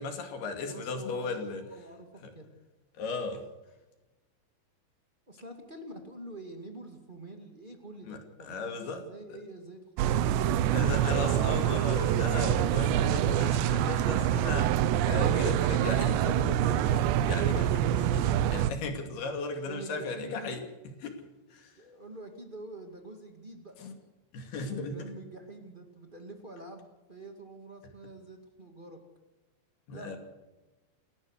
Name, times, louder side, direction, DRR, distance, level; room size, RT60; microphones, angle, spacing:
voice 1, 0.0-1.6 3.0-3.4 8.1-9.0 10.7-21.2 21.5-21.7 23.8-23.9 24.3-25.1 29.9-30.2, left 3 dB, 60° left, 4 dB, 4.3 m, -36 dB
voice 2, 0.6-2.5 5.3-10.4 19.6-20.6 21.8-23.8 24.7-29.0 29.9-30.2, right 2 dB, 35° right, 4 dB, 0.7 m, -46 dB
sound 1, 10.0-18.7, right 11 dB, 80° right, 2.9 m, -26 dB
30.0 x 13.5 x 6.6 m, 1.1 s
omnidirectional pair, 5.2 m